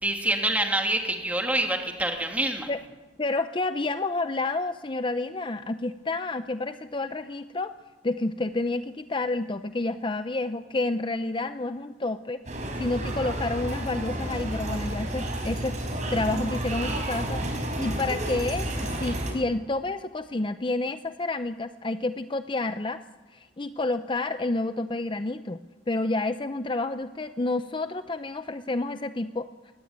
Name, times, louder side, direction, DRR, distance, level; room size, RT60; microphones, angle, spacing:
voice 1, 0.0-2.7, right 1 dB, 10° right, 3 dB, 2.9 m, -26 dB
voice 2, 3.2-7.7 8.0-12.4 12.8-23.0 23.3-25.6 25.9-29.5, left 2 dB, 30° left, 10 dB, 0.6 m, -29 dB
sound 1, 12.5-19.3, right 1 dB, 45° right, 4.8 m, -31 dB
22.0 x 19.0 x 8.9 m, 1.2 s
head